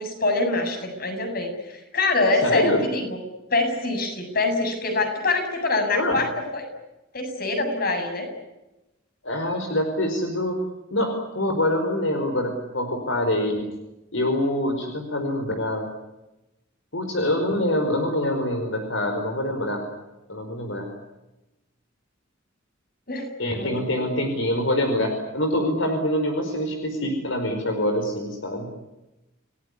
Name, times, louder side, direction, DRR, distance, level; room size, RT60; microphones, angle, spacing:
voice 1, 0.0-3.2 3.5-6.7 7.1-8.3 23.1-23.3 23.5-24.1, left 2 dB, 50° left, 5 dB, 7.3 m, -25 dB
voice 2, 2.4-2.8 5.9-6.2 9.2-10.6 10.9-13.7 14.1-15.9 16.9-19.8 20.3-20.9 23.4-28.7, left 1 dB, 75° left, 5 dB, 4.8 m, -25 dB
29.5 x 18.5 x 9.7 m, 0.99 s
head